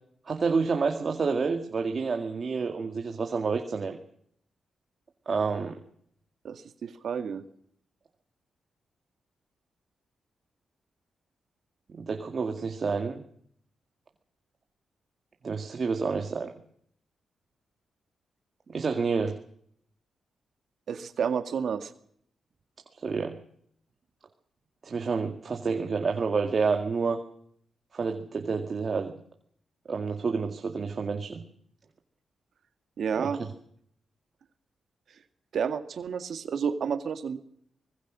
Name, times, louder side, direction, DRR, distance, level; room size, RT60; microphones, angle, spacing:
voice 1, 0.3-4.0 5.3-5.8 11.9-13.2 15.4-16.5 18.7-19.4 23.0-23.4 24.8-27.2 27.9-29.1 29.9-31.4 33.2-33.3, right 5 dB, 40° right, 4 dB, 2.1 m, -29 dB
voice 2, 6.4-7.4 20.9-21.9 33.0-33.4 35.5-37.4, right 7 dB, 65° right, 8 dB, 2.0 m, -30 dB
25.0 x 20.5 x 6.3 m, 0.68 s
wide cardioid pair, 130°, 0 cm